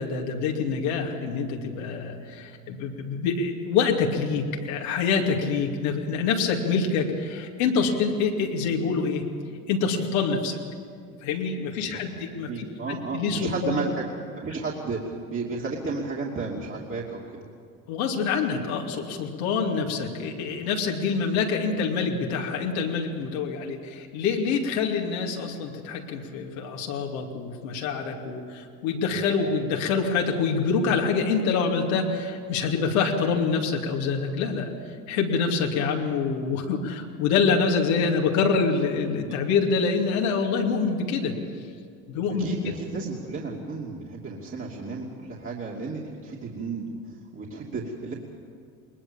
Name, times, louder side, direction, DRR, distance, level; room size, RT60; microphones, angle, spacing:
voice 1, 0.0-9.2 9.7-10.6 11.2-13.8 17.9-34.7 35.1-41.4 42.1-42.7, left 5 dB, 80° left, 0 dB, 2.7 m, -26 dB
voice 2, 12.5-13.9 14.4-17.4 39.1-39.4 42.4-48.1, right 4 dB, 30° right, -4 dB, 2.8 m, -33 dB
20.5 x 20.5 x 7.3 m, 2.2 s
hypercardioid pair, 80°, 42 cm